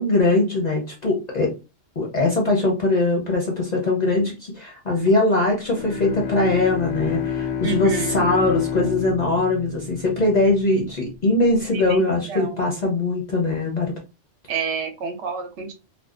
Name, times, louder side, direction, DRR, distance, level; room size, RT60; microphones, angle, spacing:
voice 1, 0.0-1.5 2.0-13.9, left 2 dB, 45° left, -1 dB, 0.6 m, -21 dB
Bowed string instrument, 5.7-11.0, left 7 dB, 80° left, 0.9 m, -29 dB
voice 2, 7.6-8.3 11.7-12.6 14.5-15.7, right 6 dB, 70° right, 5 dB, 0.9 m, -29 dB
2.6 x 2.1 x 2.3 m, 0.29 s
omnidirectional pair, 1.3 m